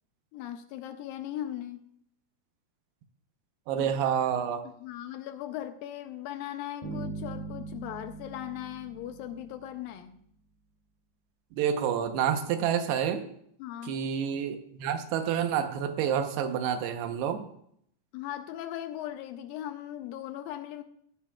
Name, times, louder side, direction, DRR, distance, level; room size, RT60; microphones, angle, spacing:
voice 1, 0.3-1.9 3.8-3.9 4.6-10.2 13.6-14.0 18.1-20.8, left 12 dB, 80° left, 9 dB, 2.1 m, -38 dB
voice 2, 3.7-4.7 11.6-13.2 13.9-17.5, right 8 dB, 85° right, 7 dB, 3.0 m, -28 dB
sound 1, 6.8-9.8, right 3 dB, 10° left, 5.1 m, -40 dB
17.5 x 11.5 x 2.3 m, 0.69 s
omnidirectional pair, 4.6 m